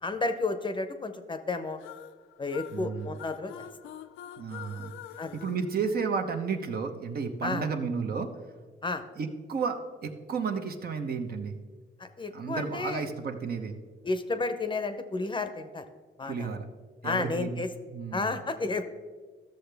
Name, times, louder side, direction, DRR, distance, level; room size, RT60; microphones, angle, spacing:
voice 1, 0.0-1.8 2.4-3.7 5.2-5.4 7.4-7.6 8.8-9.0 12.0-13.1 14.0-15.8 16.2-16.5 17.0-17.7 18.1-19.0, left 3 dB, 25° left, 8 dB, 0.7 m, -32 dB
sound 1, 1.8-6.5, left 10 dB, 85° left, 0.4 m, -46 dB
voice 2, 2.7-3.2 4.4-4.9 5.3-8.3 9.2-11.6 12.3-13.8 16.3-16.7 17.0-17.6 17.9-18.4, right 5 dB, 50° right, 6 dB, 0.9 m, -32 dB
13.0 x 6.6 x 3.4 m, 1.5 s
cardioid pair, 90°, 20 cm